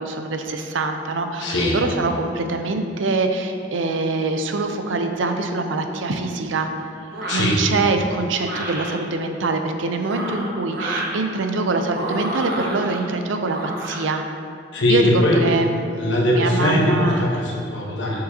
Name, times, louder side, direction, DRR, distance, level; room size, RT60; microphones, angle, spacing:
voice 1, 0.0-6.7 7.3-14.2 14.9-17.2, right 3 dB, 80° right, 6 dB, 0.5 m, -24 dB
voice 2, 1.4-1.8 7.3-7.6 14.7-15.4 16.0-18.2, left 1 dB, 70° left, -2 dB, 1.1 m, -20 dB
sound 1, 7.1-7.6 8.4-8.9 9.9-11.2 11.9-13.0 13.5-14.0, right 1 dB, 60° right, 1.0 m, -29 dB
6.7 x 6.6 x 2.7 m, 2.4 s
head